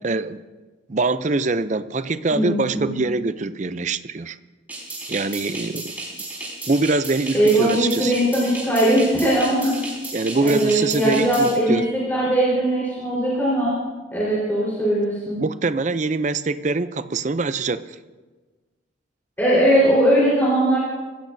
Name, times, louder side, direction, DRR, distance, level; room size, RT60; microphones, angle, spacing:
voice 1, 0.0-0.4 0.9-4.4 5.1-5.9 6.7-8.1 10.1-11.8 15.4-18.0, right 3 dB, 40° right, 13 dB, 0.5 m, -24 dB
voice 2, 2.3-3.0 7.3-9.7 10.4-13.8 14.1-15.4 19.4-20.8, right 1 dB, 10° left, -8 dB, 4.2 m, -20 dB
sound 1, 4.7-11.5, right 2 dB, 10° right, 4.5 m, -34 dB
25.5 x 15.5 x 2.7 m, 1.3 s
head